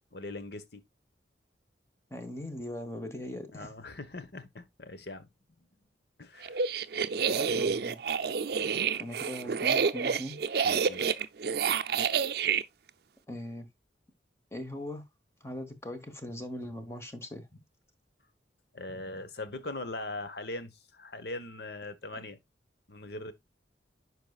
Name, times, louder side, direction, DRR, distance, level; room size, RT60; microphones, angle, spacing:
voice 1, 0.1-0.8 3.5-5.3 6.2-6.7 10.6-11.1 18.7-22.4 22.9-23.3, left 2 dB, 60° left, 1.0 m, -41 dB
voice 2, 2.1-3.7 7.4-8.0 9.0-10.4 13.3-13.7 14.5-15.0 15.4-17.6 18.9-19.0, left 1 dB, 15° left, 1.0 m, -40 dB
sound 1, 6.4-12.6, right 6 dB, 55° right, 0.5 m, -28 dB
10.5 x 4.7 x 2.3 m
head